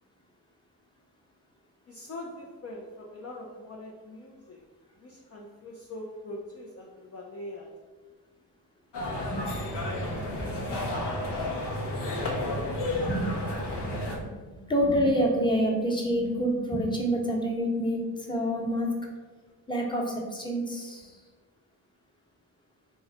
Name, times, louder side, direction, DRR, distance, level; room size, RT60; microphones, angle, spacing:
voice 1, 1.9-4.6 5.0-7.7, left 1 dB, 35° left, -2 dB, 0.6 m, -42 dB
sound 1, 8.9-14.2, left 1 dB, 65° left, 0.9 m, -31 dB
voice 2, 9.9-10.6 12.9-14.3 14.5-18.9 19.7-21.1, equal, 10° left, -2 dB, 1.1 m, -28 dB
3.2 x 2.3 x 4.1 m, 1.3 s
supercardioid pair, 40°, 43 cm